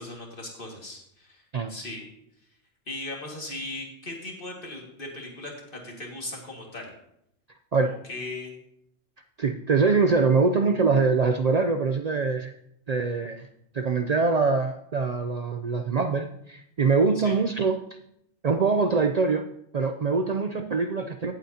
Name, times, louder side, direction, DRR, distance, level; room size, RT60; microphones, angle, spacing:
voice 1, 0.0-1.4 1.7-2.1 2.9-6.9 8.1-8.5 17.2-17.3, left 2 dB, 50° left, 0 dB, 2.2 m, -38 dB
voice 2, 9.4-12.5 12.9-13.5 13.7-17.8 18.4-21.3, right 4 dB, 55° right, 6 dB, 0.4 m, -24 dB
17.0 x 7.7 x 2.8 m, 0.75 s
omnidirectional pair, 1.2 m